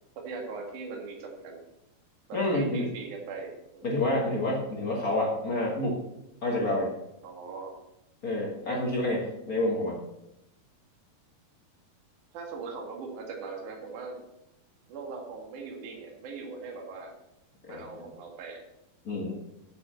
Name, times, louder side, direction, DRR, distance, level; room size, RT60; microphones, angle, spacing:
voice 1, 0.2-1.6 2.3-3.9 7.2-7.7 8.9-9.1 12.3-14.2 14.9-17.1 17.7-18.6, right 4 dB, 55° right, 1 dB, 3.0 m, -40 dB
voice 2, 2.3-2.9 3.8-6.0 6.4-6.9 8.2-10.0 17.7-17.8 19.0-19.3, left 1 dB, 55° left, -3 dB, 0.9 m, -28 dB
9.2 x 6.3 x 7.7 m, 0.89 s
omnidirectional pair, 4.6 m